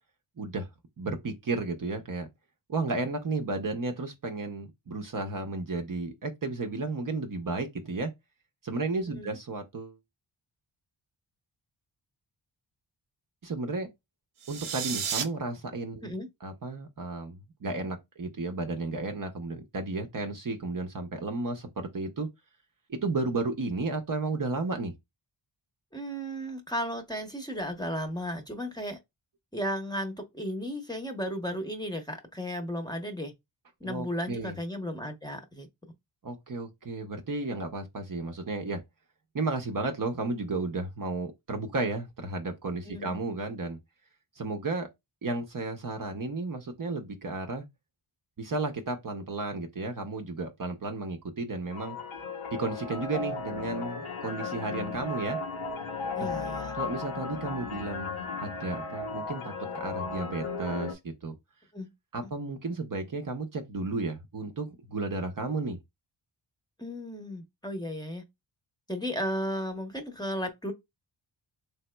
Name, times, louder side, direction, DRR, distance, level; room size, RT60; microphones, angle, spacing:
voice 1, 0.4-0.7 1.0-2.3 2.7-8.1 8.6-10.0 13.4-13.9 14.5-16.1 16.4-22.3 22.9-24.9 33.8-34.6 36.2-38.8 39.3-43.8 44.4-44.9 45.2-47.6 48.4-52.0 52.6-55.4 56.2-56.3 56.7-61.3 62.1-65.8, right 3 dB, 40° right, 0.7 m, -33 dB
sound 1, 14.4-15.2, right 8 dB, 80° right, 0.7 m, -32 dB
voice 2, 25.9-29.0 29.5-33.3 33.8-35.7 42.8-43.2 56.1-56.7 61.7-61.9 66.8-68.2 68.9-70.7, equal, 10° left, 0.8 m, -34 dB
sound 2, 51.7-61.0, left 4 dB, 75° left, 0.9 m, -35 dB
3.5 x 2.8 x 2.2 m
cardioid pair, 50°, 48 cm